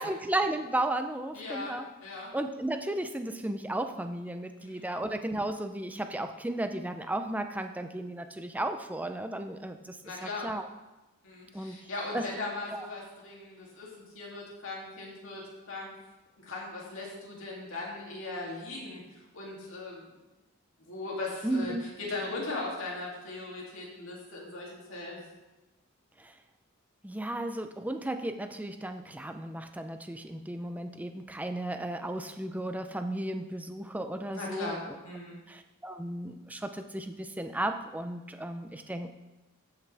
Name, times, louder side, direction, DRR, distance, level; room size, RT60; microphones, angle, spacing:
voice 1, 0.0-1.9 2.3-10.7 11.5-11.8 12.1-12.2 12.7-12.9 21.4-21.9 26.2-26.4 27.0-34.8 35.5-39.1, right 1 dB, 5° right, 7 dB, 0.4 m, -34 dB
voice 2, 1.3-2.3 4.6-5.0 10.0-10.5 11.2-15.9 16.4-20.2 20.8-25.2 34.3-35.4, left 2 dB, 65° left, -4 dB, 2.7 m, -39 dB
15.0 x 5.8 x 3.4 m, 1.1 s
head